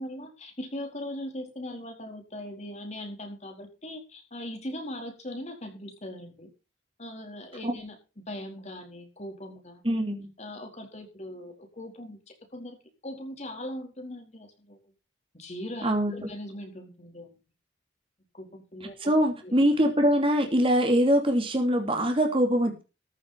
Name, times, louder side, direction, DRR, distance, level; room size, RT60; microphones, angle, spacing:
voice 1, 0.0-6.5 7.0-9.8 10.4-12.8 13.0-14.8 15.3-17.4 18.3-19.1 19.4-19.5, left 1 dB, 35° left, 3 dB, 4.5 m, -40 dB
voice 2, 9.8-10.3 15.8-16.1 19.1-22.8, equal, 30° right, 3 dB, 3.0 m, -23 dB
14.5 x 7.2 x 5.8 m, 0.31 s
head